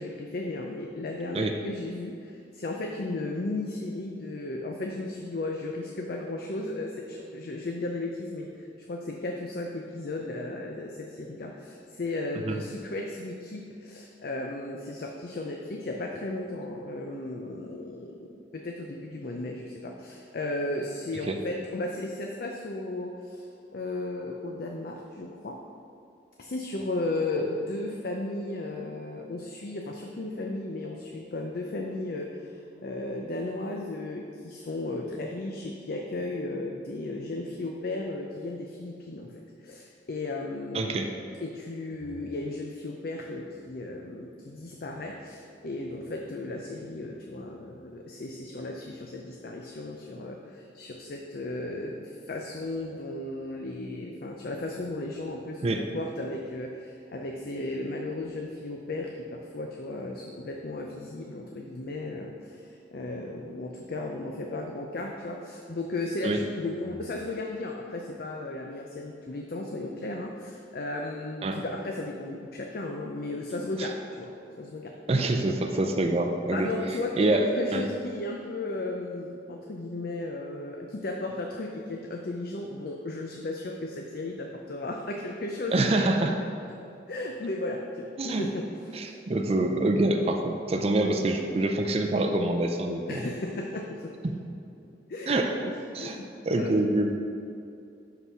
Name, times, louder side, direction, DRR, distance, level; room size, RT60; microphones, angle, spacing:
voice 1, 0.0-23.5 23.7-25.6 26.4-41.1 41.4-75.0 76.5-86.1 87.1-89.2 93.1-94.1 95.1-96.7, left 2 dB, 55° left, 1 dB, 0.6 m, -35 dB
voice 2, 40.7-41.1 55.6-55.8 66.2-66.4 71.4-71.6 73.8-73.9 75.1-76.7 77.2-77.5 77.7-77.8 85.7-86.4 88.2-88.4 88.9-93.2 94.2-94.4 95.3-95.5 95.9-96.2 96.5-97.1, right 2 dB, 35° right, 3 dB, 0.5 m, -26 dB
6.0 x 5.8 x 5.5 m, 2.6 s
head